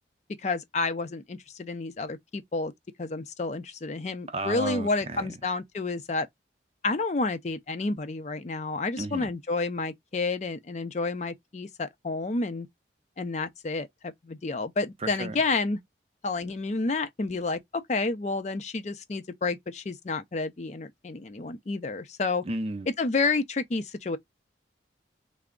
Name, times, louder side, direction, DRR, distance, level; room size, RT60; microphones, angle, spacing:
voice 1, 0.4-2.7 3.0-6.3 6.8-12.7 13.2-15.8 16.2-22.4 23.0-24.2, left 3 dB, 40° left, 0.4 m, -30 dB
voice 2, 4.3-5.3 9.0-9.3 15.0-15.4 22.4-22.9, right 2 dB, 35° right, 0.5 m, -33 dB
3.4 x 2.0 x 3.6 m
head